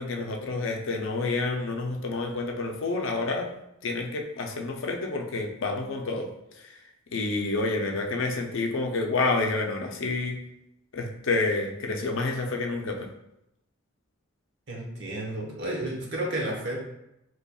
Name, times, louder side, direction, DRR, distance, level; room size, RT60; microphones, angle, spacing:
voice 1, 0.0-3.5 3.8-6.3 7.1-10.4 10.9-13.1, left 3 dB, 70° left, 2 dB, 0.5 m, -29 dB
voice 2, 14.7-16.8, right 1 dB, 55° right, -2 dB, 1.0 m, -32 dB
4.1 x 2.9 x 2.3 m, 0.83 s
head